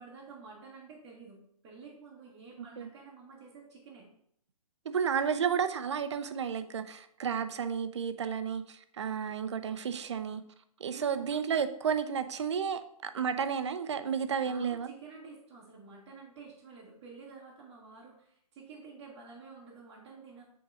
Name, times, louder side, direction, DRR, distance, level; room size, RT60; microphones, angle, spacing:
voice 1, 0.0-1.4 1.6-4.1 10.9-11.3 14.4-20.4, right 4 dB, 15° right, -7 dB, 1.1 m, -50 dB
voice 2, 4.9-10.4 10.8-14.9, right 7 dB, 50° right, 10 dB, 0.5 m, -32 dB
5.5 x 3.7 x 5.7 m, 0.69 s
hypercardioid pair, 165°, 19 cm